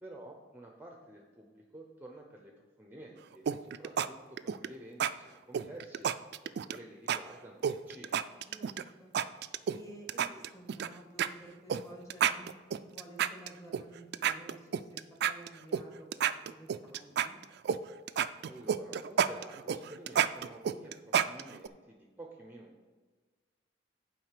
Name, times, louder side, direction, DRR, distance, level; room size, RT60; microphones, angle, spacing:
voice 1, 0.0-6.1 6.7-8.2 18.4-22.8, right 1 dB, 10° right, 1 dB, 0.7 m, -50 dB
sound 1, 3.5-4.1 4.4-4.7 5.0-5.1 5.5-6.8 7.1-7.2 7.6-8.8 9.1-9.8 10.1-10.9 11.2-11.3 11.7-11.8 12.1-13.8 14.1-15.8 16.1-17.8 18.1-21.7, right 8 dB, 60° right, 0.3 m, -30 dB
voice 2, 8.4-9.1 9.7-12.5 12.8-17.4, right 2 dB, 15° left, 0 dB, 1.7 m, -52 dB
7.6 x 5.0 x 6.7 m, 1.4 s
head